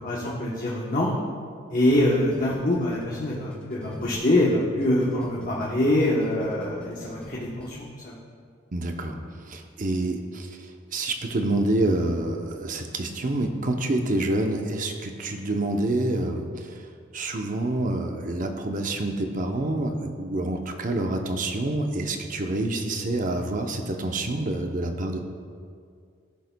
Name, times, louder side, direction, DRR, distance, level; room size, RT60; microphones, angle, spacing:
voice 1, 0.0-1.1 1.7-8.1, left 1 dB, 45° left, -5 dB, 1.0 m, -24 dB
sound 1, 1.9-4.5 4.8-7.7, equal, 5° left, 1.2 m, -43 dB
voice 2, 8.7-9.2 9.5-16.9 17.1-25.2, right 2 dB, 45° right, 4 dB, 0.7 m, -27 dB
15.0 x 6.6 x 2.2 m, 2.2 s
head